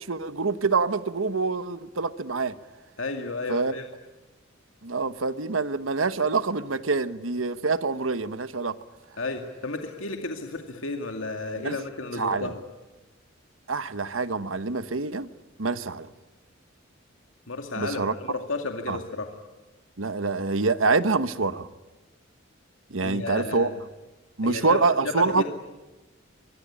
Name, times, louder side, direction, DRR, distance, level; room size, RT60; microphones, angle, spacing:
voice 1, 0.0-2.5 3.5-3.7 4.8-8.7 11.6-11.8 12.2-12.5 13.7-15.3 15.6-16.1 17.8-18.1 18.9-19.0 20.0-21.7 22.9-23.7 24.4-25.4, right 4 dB, 90° right, 1.2 m, -26 dB
voice 2, 3.0-3.8 9.2-12.6 17.5-19.3 23.0-23.8 24.4-25.4, left 3 dB, 80° left, 2.3 m, -32 dB
24.5 x 24.0 x 9.9 m
head